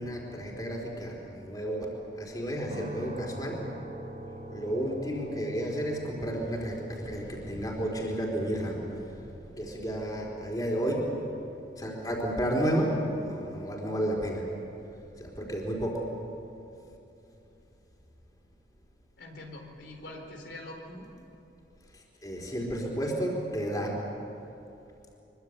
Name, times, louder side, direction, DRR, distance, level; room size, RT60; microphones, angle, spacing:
voice 1, 0.0-1.9 2.1-3.6 4.5-11.1 11.8-14.4 15.2-16.1 21.9-24.0, right 1 dB, 20° left, -1 dB, 4.2 m, -32 dB
sound 1, 2.7-16.7, right 1 dB, 35° right, 2.1 m, -47 dB
voice 2, 19.2-21.1, left 1 dB, 90° left, 3 dB, 4.1 m, -44 dB
24.5 x 23.5 x 8.3 m, 2.9 s
head